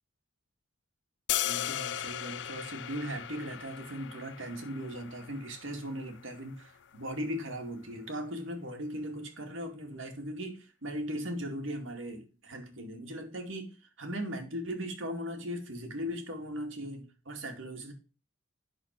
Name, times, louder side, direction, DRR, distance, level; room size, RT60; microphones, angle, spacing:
sound 1, 1.3-7.4, left 12 dB, 60° left, 0.4 m, -38 dB
voice 1, 1.4-17.9, equal, 80° right, 3 dB, 2.3 m, -38 dB
11.5 x 4.6 x 5.9 m, 0.34 s
head